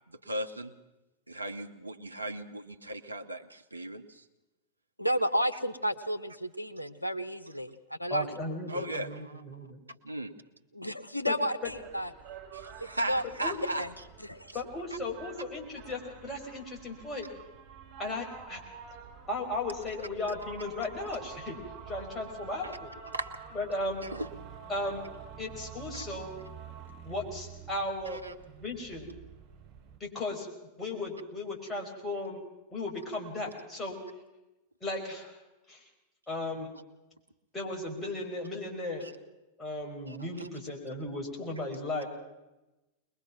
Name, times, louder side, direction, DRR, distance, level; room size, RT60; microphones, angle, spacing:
voice 1, 0.1-0.7 1.3-4.2 8.7-9.4 10.1-10.3 12.5-13.8 23.1-23.3 24.1-24.3 25.9-26.0 28.1-28.3 39.0-39.1 40.1-40.5, right 1 dB, 80° right, 8 dB, 1.1 m, -37 dB
voice 2, 5.0-8.3 10.7-12.1 12.8-13.2 13.8-13.9 14.2-14.5, equal, 90° left, 8 dB, 0.9 m, -32 dB
voice 3, 8.1-9.7 11.3-11.4 13.4-13.6 14.5-17.3 18.0-18.6 19.3-21.6 21.9-22.9 23.5-24.0 24.7-25.0 25.4-26.3 27.0-28.2 28.5-29.1 30.0-30.5 30.8-32.4 32.7-34.0 34.8-35.4 35.7-35.9 36.3-36.7 37.5-39.0 39.6-42.1, left 2 dB, 15° left, 0 dB, 4.9 m, -36 dB
sound 1, 11.6-30.0, right 8 dB, 35° right, 5.1 m, -48 dB
22.5 x 21.0 x 6.0 m, 1.0 s
figure-of-eight pair, 90°, 0 cm